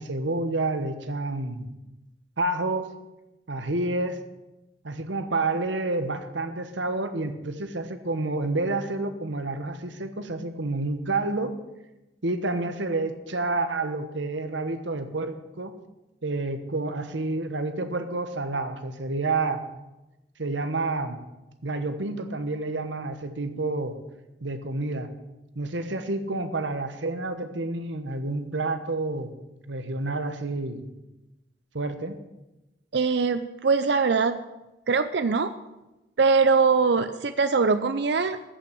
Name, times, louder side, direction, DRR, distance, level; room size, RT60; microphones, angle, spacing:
voice 1, 0.0-1.7 2.4-3.0 3.5-4.2 4.8-11.6 12.2-15.7 16.2-19.6 20.4-21.2 21.6-24.0 24.4-25.1 25.5-29.3 29.7-30.8 31.7-32.2, right 2 dB, 75° right, 9 dB, 1.2 m, -29 dB
voice 2, 32.9-34.4 34.9-35.5 36.2-38.4, right 4 dB, 60° right, 11 dB, 0.5 m, -22 dB
14.0 x 5.9 x 8.4 m, 1.0 s
head